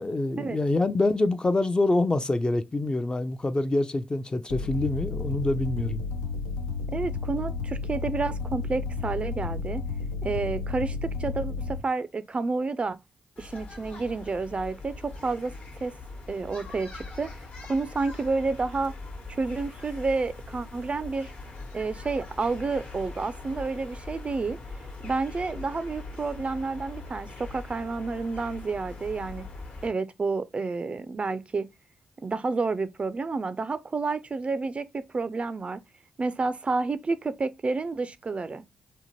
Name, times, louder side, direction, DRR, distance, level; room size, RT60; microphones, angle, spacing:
voice 1, 0.0-6.0, left 2 dB, 25° left, 0.4 m, -26 dB
sound 1, 4.5-11.8, left 4 dB, 85° left, 0.4 m, -32 dB
voice 2, 6.9-9.8 10.2-13.0 13.4-15.5 15.8-15.9 16.3-17.3 17.7-18.9 19.3-21.3 21.7-24.6 25.0-29.5 29.8-31.7 32.2-35.8 36.2-38.6, right 3 dB, 35° right, 0.3 m, -30 dB
sound 2, 13.4-29.9, left 3 dB, 50° left, 1.0 m, -42 dB
2.8 x 2.1 x 2.9 m
hypercardioid pair, 40°, 3 cm